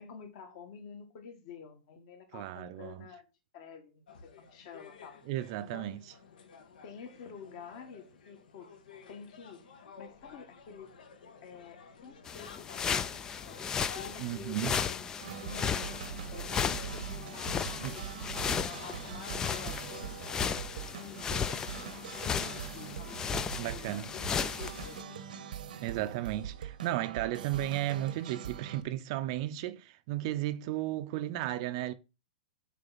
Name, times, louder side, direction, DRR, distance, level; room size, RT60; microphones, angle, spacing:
voice 1, 0.0-3.3 3.5-5.2 5.6-5.9 6.8-8.7 9.1-9.7 10.0-10.9 11.4-15.1 15.4-15.9 16.3-18.1 18.3-20.6 20.9-25.2, left 6 dB, 40° left, 1.6 m, -49 dB
voice 2, 2.3-3.0 5.3-6.0 14.2-14.8 17.8-18.0 23.6-24.0 25.8-31.9, right 14 dB, 40° right, 0.5 m, -34 dB
sound 1, 4.1-19.4, left 5 dB, 75° left, 1.5 m, -54 dB
sound 2, 12.3-25.0, left 7 dB, 15° left, 0.3 m, -35 dB
sound 3, 15.2-28.8, right 8 dB, 70° right, 0.9 m, -43 dB
6.8 x 4.6 x 4.0 m
hypercardioid pair, 155°, 5 cm